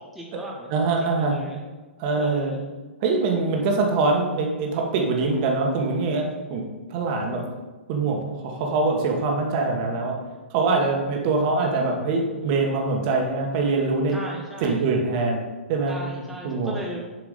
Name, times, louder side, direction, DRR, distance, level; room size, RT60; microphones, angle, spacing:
voice 1, 0.0-0.7 1.2-1.6 2.1-2.6 14.1-14.8 15.9-17.0, right 1 dB, ahead, -2 dB, 0.9 m, -37 dB
voice 2, 0.7-1.4 2.0-2.6 3.0-6.6 6.9-7.4 7.9-10.2 10.5-14.2 14.6-15.4 15.7-16.0 16.4-16.7, right 3 dB, 40° right, 1 dB, 1.5 m, -23 dB
7.4 x 4.8 x 5.2 m, 1.2 s
hypercardioid pair, 125°, 6 cm